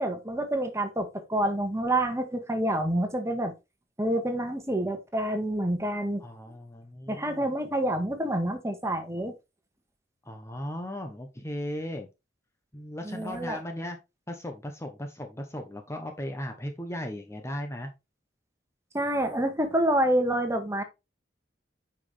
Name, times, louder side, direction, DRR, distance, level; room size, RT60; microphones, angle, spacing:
voice 1, 0.0-3.5 4.0-6.2 7.1-9.3 13.0-13.6 18.9-20.8, right 1 dB, 15° right, 1.6 m, -28 dB
voice 2, 6.2-7.4 10.2-12.1 12.7-14.0 14.3-17.9, left 1 dB, 15° left, 0.9 m, -37 dB
9.0 x 5.5 x 3.4 m
head